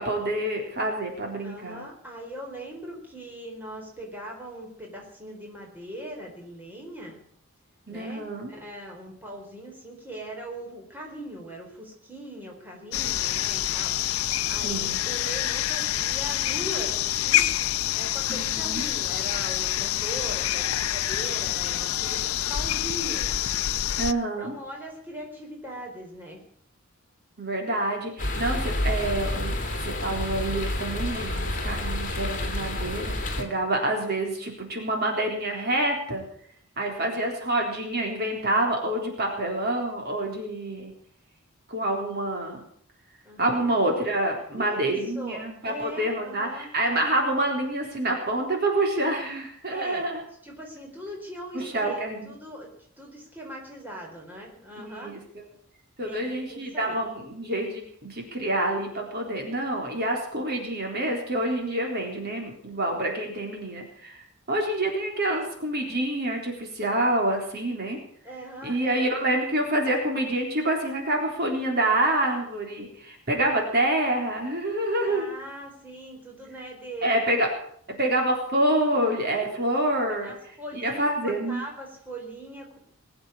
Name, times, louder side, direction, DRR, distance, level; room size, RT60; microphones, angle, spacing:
voice 1, 0.0-1.9 7.9-8.5 14.6-15.0 18.3-18.8 24.0-24.5 27.4-29.5 29.8-36.2 36.8-40.9 41.7-42.6 43.4-50.2 51.5-52.3 54.8-55.2 56.0-68.0 68.6-75.3 77.0-77.5 78.0-80.3 80.7-81.6, right 1 dB, 50° right, 1 dB, 3.9 m, -27 dB
voice 2, 1.4-7.2 7.9-13.9 14.5-17.5 17.9-22.2 22.5-23.4 24.4-26.4 36.9-37.2 43.2-43.6 44.5-46.7 49.7-50.1 50.4-52.7 53.0-55.1 56.0-57.0 68.2-69.1 75.0-77.2 79.3-79.5 80.2-82.8, right 1 dB, 10° right, -1 dB, 4.4 m, -40 dB
sound 1, 12.9-24.1, left 12 dB, 85° left, 0.6 m, -27 dB
sound 2, 28.2-33.4, left 1 dB, 40° left, 2.8 m, -29 dB
21.0 x 7.9 x 8.7 m, 0.64 s
head